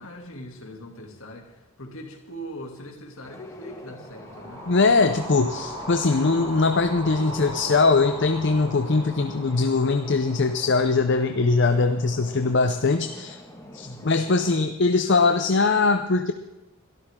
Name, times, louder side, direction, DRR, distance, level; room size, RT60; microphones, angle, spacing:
voice 1, 0.0-4.7 13.8-14.1, equal, 70° left, 3 dB, 2.5 m, -41 dB
sound 1, 3.2-14.7, left 1 dB, 15° left, 1.7 m, -45 dB
sound 2, 4.0-12.3, equal, 25° right, 7.3 m, -39 dB
voice 2, 4.7-13.4 13.7-16.3, left 3 dB, 55° left, 8 dB, 0.6 m, -21 dB
22.0 x 13.5 x 3.7 m, 0.96 s
head